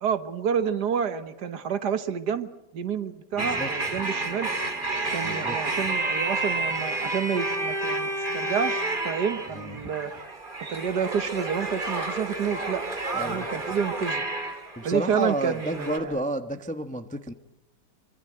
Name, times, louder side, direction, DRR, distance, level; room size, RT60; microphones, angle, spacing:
voice 1, 0.0-4.5 5.1-10.1 10.7-12.8 13.2-14.2 14.8-16.2, right 7 dB, 60° right, 12 dB, 1.6 m, -29 dB
voice 2, 3.4-3.7 5.2-5.8 9.5-9.9 13.1-13.5 14.8-17.3, right 1 dB, 5° left, 8 dB, 0.7 m, -31 dB
sound 1, 3.4-16.0, right 2 dB, 25° right, 2.6 m, -30 dB
24.5 x 24.5 x 7.8 m, 0.84 s
omnidirectional pair, 2.1 m